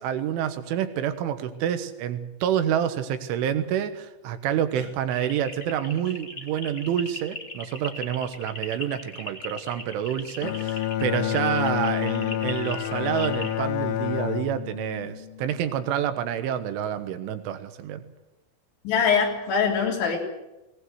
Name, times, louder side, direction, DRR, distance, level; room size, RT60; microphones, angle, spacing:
voice 1, 0.0-18.0, right 9 dB, 80° right, 9 dB, 3.8 m, -28 dB
sound 1, 5.1-13.6, left 2 dB, 30° left, 1.1 m, -39 dB
Bowed string instrument, 10.4-15.9, left 12 dB, 85° left, 3.4 m, -29 dB
voice 2, 18.9-20.2, left 6 dB, 70° left, 0 dB, 5.6 m, -23 dB
20.5 x 18.5 x 8.0 m, 1.0 s
omnidirectional pair, 5.5 m